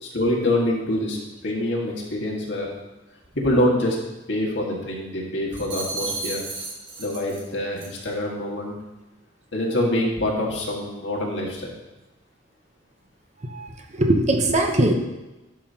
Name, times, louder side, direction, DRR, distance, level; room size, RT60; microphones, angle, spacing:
voice 1, 0.0-2.7 3.3-4.0 4.3-6.4 7.0-8.8 9.5-11.8, left 1 dB, 70° left, -2 dB, 1.7 m, -25 dB
sound 1, 5.5-7.5 7.8-8.1, right 3 dB, 70° right, 1.9 m, -33 dB
voice 2, 13.5-14.9, right 1 dB, 35° right, 4 dB, 0.7 m, -21 dB
11.0 x 5.7 x 2.8 m, 1.0 s
head